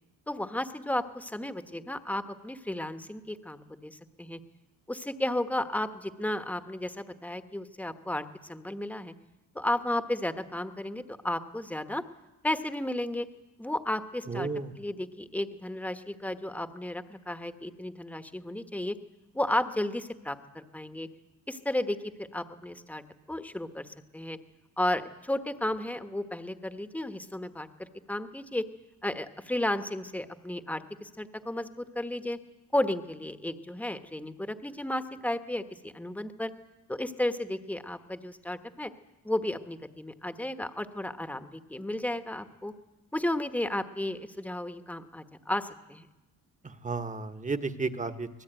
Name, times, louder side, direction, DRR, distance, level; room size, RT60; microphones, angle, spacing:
voice 1, 0.3-4.4 4.9-9.1 9.5-12.0 12.4-13.3 13.6-14.5 14.8-19.0 19.3-21.1 21.5-23.0 23.3-23.9 24.1-24.4 24.8-28.6 29.0-32.4 32.7-36.5 36.9-38.9 39.2-42.7 43.1-46.1, left 1 dB, 5° left, 9 dB, 1.3 m, -33 dB
voice 2, 14.3-14.7 46.8-48.4, right 4 dB, 20° right, 8 dB, 1.4 m, -33 dB
25.0 x 19.5 x 9.1 m, 1.0 s
cardioid pair, 115°, 35 cm